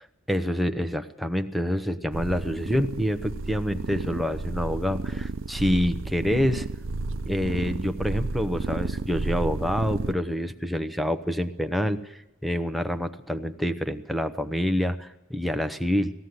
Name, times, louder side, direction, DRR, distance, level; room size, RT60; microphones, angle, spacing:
voice 1, 0.3-6.7 7.3-16.1, equal, ahead, 8 dB, 0.8 m, -27 dB
sound 1, 2.1-10.1, right 3 dB, 75° right, 0.7 m, -32 dB
18.5 x 15.5 x 9.6 m, 0.96 s
head